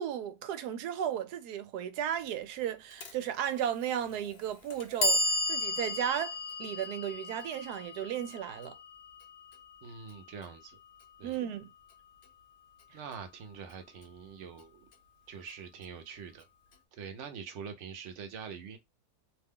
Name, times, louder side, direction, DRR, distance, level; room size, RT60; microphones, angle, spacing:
voice 1, 0.0-6.3 6.6-8.8 11.2-11.7, right 10 dB, 90° right, 1.1 m, -34 dB
Clock, 3.0-3.1 4.1-4.2 4.7-10.7, left 1 dB, 55° left, 0.8 m, -34 dB
voice 2, 9.8-10.8 11.2-11.4 12.9-14.8 15.3-16.5 16.9-18.8, right 6 dB, 60° right, 0.9 m, -44 dB
2.8 x 2.2 x 3.5 m
omnidirectional pair, 1.6 m